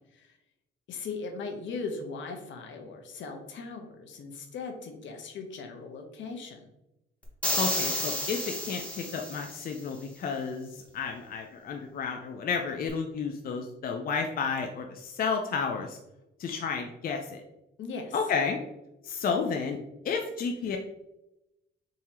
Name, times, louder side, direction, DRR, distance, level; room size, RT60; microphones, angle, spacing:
voice 1, 0.9-6.6 17.8-18.2, left 4 dB, 70° left, 4 dB, 0.9 m, -39 dB
sound 1, 7.4-9.7, left 1 dB, 5° left, 1.2 m, -31 dB
voice 2, 7.6-16.0 16.4-17.4 18.1-18.6 19.0-19.8 20.0-20.8, left 5 dB, 45° left, 3 dB, 0.5 m, -31 dB
3.8 x 2.8 x 4.2 m, 0.91 s
cardioid pair, 90°, 20 cm